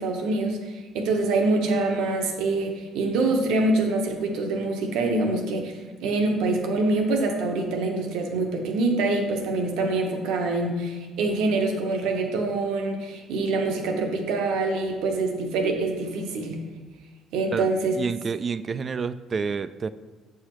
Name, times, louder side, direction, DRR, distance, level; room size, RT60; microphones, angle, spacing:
voice 1, 0.0-16.6 17.3-18.0, right 2 dB, 80° right, 3 dB, 0.9 m, -25 dB
voice 2, 18.0-19.9, right 5 dB, 40° right, 14 dB, 0.3 m, -29 dB
7.0 x 4.8 x 3.0 m, 1.4 s
supercardioid pair, 85°, 0 cm